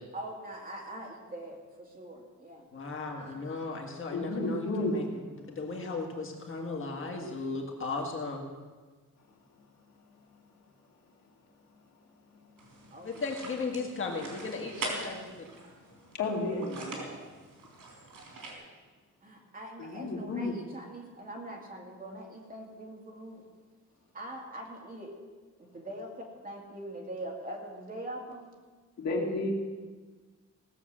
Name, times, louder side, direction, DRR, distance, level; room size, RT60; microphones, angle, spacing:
voice 1, 0.1-2.7 12.9-13.3 16.4-16.7 19.2-23.4 24.1-25.2 25.6-28.5, right 1 dB, 30° right, 0 dB, 2.2 m, -43 dB
voice 2, 2.7-5.1 5.5-8.5 13.0-15.5, left 3 dB, 45° left, 1 dB, 1.8 m, -36 dB
voice 3, 4.1-5.0 15.9-16.9 19.8-20.5 29.0-29.5, left 2 dB, 60° left, -1 dB, 2.5 m, -32 dB
sound 1, 12.6-18.5, right 3 dB, 85° right, 3.9 m, -43 dB
17.5 x 7.1 x 7.5 m, 1.4 s
wide cardioid pair, 165°, 30 cm